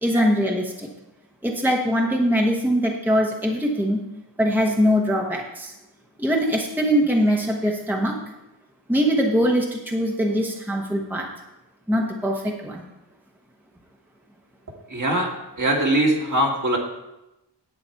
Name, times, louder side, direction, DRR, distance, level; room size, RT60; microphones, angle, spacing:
voice 1, 0.0-0.9 1.4-4.0 4.4-5.7 6.2-8.2 8.9-11.3 11.9-12.8, equal, 5° right, 0 dB, 1.0 m, -22 dB
voice 2, 14.9-15.3 15.6-16.8, right 1 dB, 45° right, 0 dB, 1.9 m, -21 dB
10.0 x 8.4 x 4.5 m, 0.94 s
wide cardioid pair, 130°, 43 cm